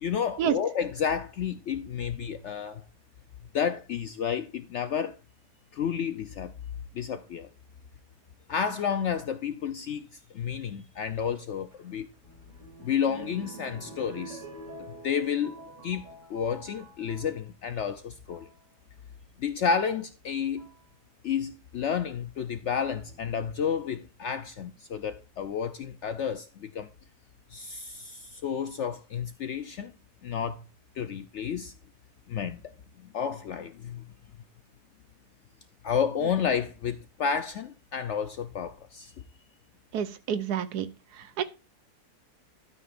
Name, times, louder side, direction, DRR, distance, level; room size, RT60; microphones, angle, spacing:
voice 1, 0.0-2.8 3.5-5.2 5.7-6.5 6.9-7.5 8.5-12.1 12.8-14.4 15.0-15.6 15.8-18.5 19.4-20.7 21.2-26.9 27.5-29.9 30.2-30.6 31.0-31.7 32.3-32.6 33.0-34.0 35.8-39.1, left 7 dB, 70° left, 0.7 m, -31 dB
sound 1, 11.7-17.3 18.1-18.5 19.8-19.9 20.6-20.9 23.0-23.6 24.3-24.4 24.6-24.7, right 2 dB, 50° right, 3.1 m, -47 dB
voice 2, 39.9-40.9 41.4-41.5, right 9 dB, 80° right, 1.3 m, -28 dB
12.5 x 8.5 x 2.5 m
omnidirectional pair, 1.7 m